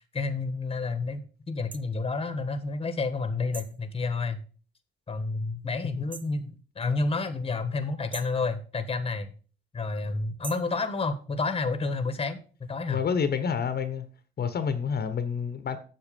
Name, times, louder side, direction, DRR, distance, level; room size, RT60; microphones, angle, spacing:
voice 1, 0.0-4.4 5.1-9.3 9.7-12.4 12.7-13.0, left 3 dB, 30° left, 1.4 m, -30 dB
sound 1, 1.7-1.9 3.5-3.8 6.1-6.4 8.1-8.4 10.4-10.7, right 4 dB, 25° right, 0.7 m, -42 dB
voice 2, 12.9-14.1 14.4-15.8, left 6 dB, 55° left, 1.2 m, -28 dB
8.4 x 6.6 x 5.2 m
cardioid pair, 90°, 20 cm